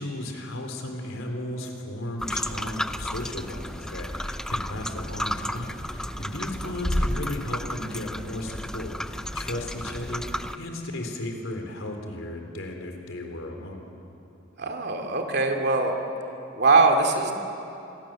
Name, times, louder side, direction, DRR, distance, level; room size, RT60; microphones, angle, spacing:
voice 1, 0.0-13.9, left 1 dB, 80° left, 3 dB, 3.8 m, -35 dB
sound 1, 2.2-10.6, equal, 5° left, 0.6 m, -32 dB
voice 2, 14.6-15.9 16.5-17.3, right 3 dB, 55° right, 3 dB, 2.7 m, -21 dB
26.5 x 22.5 x 7.7 m, 2.8 s
head